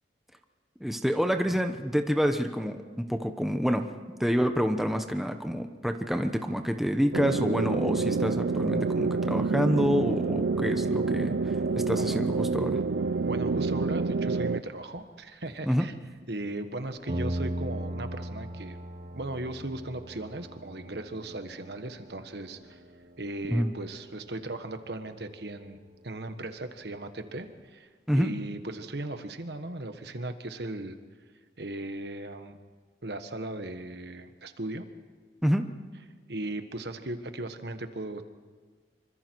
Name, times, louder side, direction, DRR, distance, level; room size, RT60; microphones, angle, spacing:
voice 1, 0.8-3.9 4.2-12.8 15.6-15.9 23.5-23.7 28.1-28.3 35.4-35.6, equal, ahead, 5 dB, 1.0 m, -27 dB
sound 1, 7.1-14.6, right 4 dB, 85° right, 0.6 m, -28 dB
voice 2, 13.2-15.9 16.3-18.8 19.1-22.8 23.2-27.9 28.1-31.0 31.6-32.6 33.0-34.8 36.3-38.2, right 2 dB, 70° right, 8 dB, 1.5 m, -37 dB
sound 2, 16.0-16.1 16.7-16.8 17.1-27.7, right 1 dB, 40° right, 1.2 m, -40 dB
26.0 x 25.0 x 4.7 m, 1.5 s
head